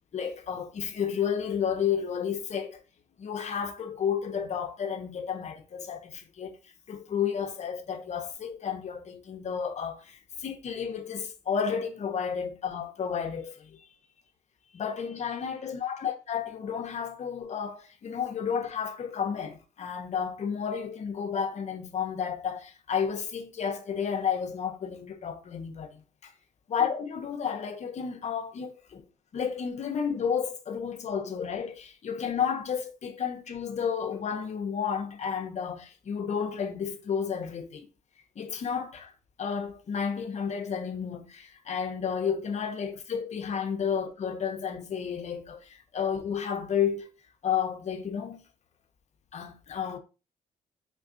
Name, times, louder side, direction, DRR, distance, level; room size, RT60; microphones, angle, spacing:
voice 1, 0.1-2.8 3.2-6.6 6.9-13.8 14.7-26.0 26.7-29.0 29.3-37.9 38.4-39.1 39.4-47.1 47.4-48.4 49.3-50.0, left 7 dB, 50° left, 0.6 m, -32 dB
3.6 x 2.2 x 2.5 m
cardioid pair, 75°, 15 cm